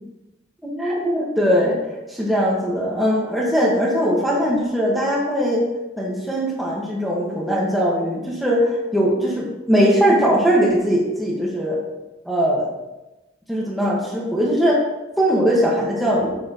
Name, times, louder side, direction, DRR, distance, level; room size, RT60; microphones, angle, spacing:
voice 1, 0.6-1.8 2.1-5.6 6.0-11.8 12.2-12.7 13.5-14.8 15.2-16.4, equal, ahead, -4 dB, 1.6 m, -20 dB
9.1 x 7.6 x 3.1 m, 1.0 s
head